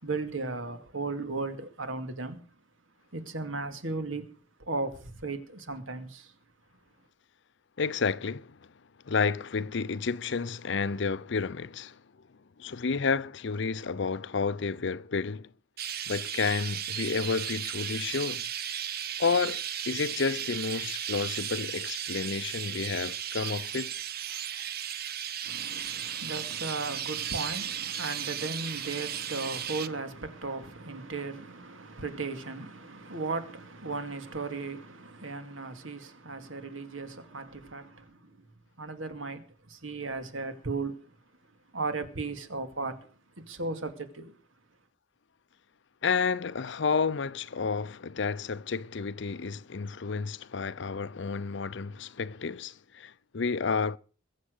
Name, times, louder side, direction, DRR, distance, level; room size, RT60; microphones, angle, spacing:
voice 1, 0.0-2.4 3.1-4.2 4.6-6.3 25.4-38.5 38.8-41.2 41.7-44.4, right 3 dB, 90° right, 2.4 m, -36 dB
voice 2, 7.8-8.6 9.0-12.0 12.6-15.5 16.1-18.4 19.2-23.9 46.0-54.0, left 5 dB, 65° left, 0.6 m, -31 dB
Chirp tweet, 15.8-29.9, right 9 dB, 50° right, 1.0 m, -35 dB
22.0 x 7.5 x 6.6 m
head